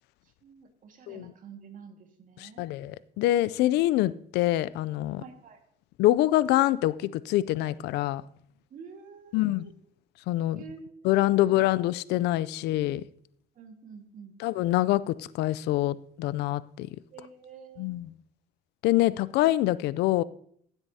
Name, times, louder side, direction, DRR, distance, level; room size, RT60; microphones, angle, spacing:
voice 1, 0.4-2.7 5.2-5.6 8.7-9.7 10.5-11.5 13.6-14.4 17.1-17.9, right 6 dB, 55° right, 1.8 m, -48 dB
voice 2, 2.4-5.2 6.0-8.2 9.3-9.7 10.3-10.6 11.0-13.0 14.4-16.9 17.8-18.1 18.8-20.2, left 15 dB, 80° left, 0.4 m, -25 dB
15.5 x 8.0 x 2.8 m
cardioid pair, 110°, 17 cm